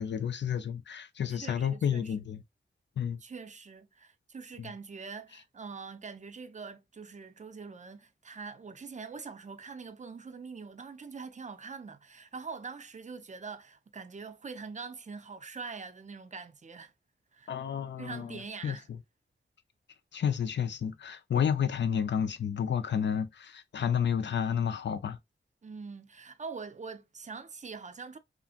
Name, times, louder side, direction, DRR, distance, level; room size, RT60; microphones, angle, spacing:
voice 1, 0.0-2.4 3.0-3.2 4.6-4.7 17.5-18.8 20.1-25.2, left 8 dB, 60° left, 0.4 m, -31 dB
voice 2, 1.3-2.2 3.2-16.9 17.3-17.6 18.0-18.9 25.6-28.2, right 5 dB, 35° right, 0.4 m, -44 dB
2.7 x 2.5 x 2.4 m
wide cardioid pair, 90°, 21 cm